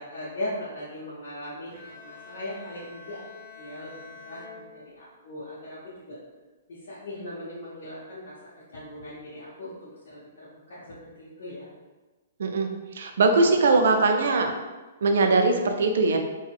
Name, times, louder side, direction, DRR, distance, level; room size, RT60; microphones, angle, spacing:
voice 1, 0.0-3.2 3.6-3.9 4.2-5.8 6.1-6.2 6.7-8.3 8.7-11.7, left 1 dB, 55° left, -8 dB, 0.6 m, -39 dB
Bowed string instrument, 1.7-5.4, left 4 dB, 5° left, 1.2 m, -47 dB
voice 2, 12.9-14.5 15.0-16.2, right 3 dB, 60° right, 5 dB, 0.3 m, -21 dB
3.9 x 2.1 x 2.4 m, 1.2 s
figure-of-eight pair, 115°, 0 cm